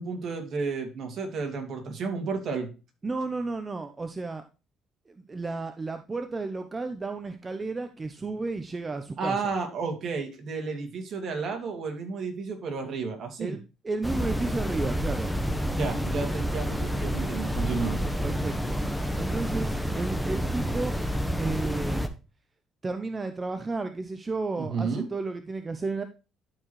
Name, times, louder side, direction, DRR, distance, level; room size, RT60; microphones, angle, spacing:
voice 1, 0.0-2.7 9.2-13.6 15.8-18.0 24.6-25.1, right 4 dB, 60° right, 3 dB, 2.5 m, -32 dB
voice 2, 3.0-4.4 5.1-9.5 13.4-13.6 13.8-15.3 18.2-18.8 19.2-20.9 21.4-22.1 22.8-26.0, right 3 dB, 25° right, 8 dB, 0.8 m, -32 dB
sound 1, 14.0-22.1, equal, 5° left, 1.1 m, -29 dB
12.5 x 4.7 x 3.2 m, 0.31 s
cardioid pair, 85°, 0 cm